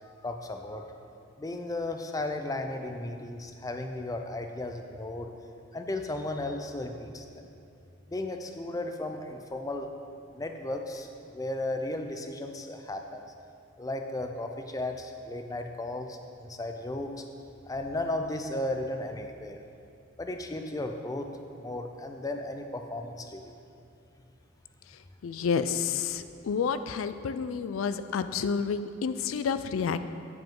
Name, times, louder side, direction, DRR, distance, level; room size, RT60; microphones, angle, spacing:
voice 1, 0.2-0.8 1.4-5.3 5.7-7.5 8.1-9.9 10.3-13.2 13.8-17.2 17.7-19.6 20.2-21.3 21.6-23.5, left 2 dB, 15° left, 5 dB, 0.4 m, -35 dB
voice 2, 24.9-30.0, left 6 dB, 80° left, 12 dB, 0.4 m, -30 dB
7.7 x 7.2 x 3.8 m, 2.6 s
head